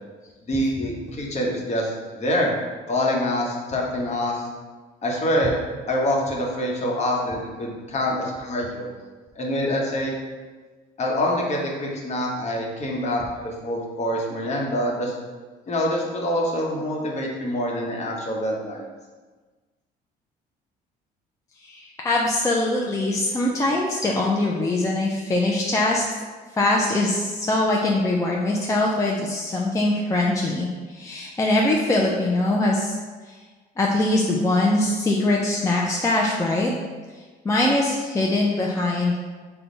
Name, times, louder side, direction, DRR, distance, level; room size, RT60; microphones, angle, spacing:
voice 1, 0.4-2.5 2.9-4.4 5.0-5.5 5.9-8.9 9.4-10.1 11.0-15.1 15.7-18.9, left 1 dB, 40° left, -1 dB, 1.0 m, -25 dB
voice 2, 21.6-26.0 26.6-33.0 33.3-33.4 33.8-36.7 37.4-39.2, left 2 dB, 20° left, -2 dB, 0.4 m, -22 dB
5.2 x 2.3 x 3.9 m, 1.4 s
cardioid pair, 110°, 17 cm